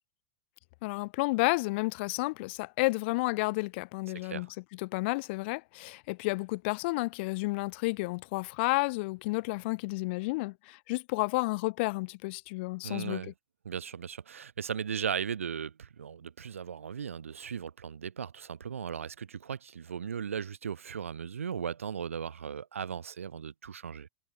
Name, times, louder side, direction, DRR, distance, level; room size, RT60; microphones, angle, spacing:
voice 1, 0.8-4.5 4.7-13.2, left 24 dB, 55° left, 0.5 m, -31 dB
voice 2, 4.1-4.5 12.8-13.3 13.7-24.1, right 7 dB, 85° right, 0.5 m, -37 dB
hypercardioid pair, 90°, 7 cm